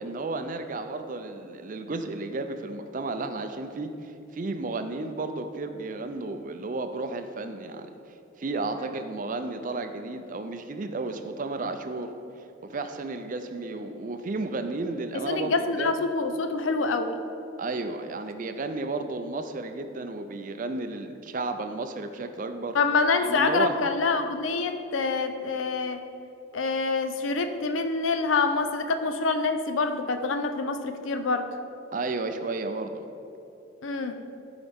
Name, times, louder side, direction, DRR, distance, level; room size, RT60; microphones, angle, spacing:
voice 1, 0.0-7.9 8.4-12.1 12.6-15.9 17.6-22.8 23.1-23.8 31.9-33.0, right 3 dB, 40° right, 8 dB, 0.4 m, -33 dB
voice 2, 15.2-17.2 22.7-26.0 26.5-31.5 33.8-34.1, left 4 dB, 80° left, 8 dB, 0.6 m, -26 dB
13.0 x 4.8 x 3.5 m, 2.7 s
head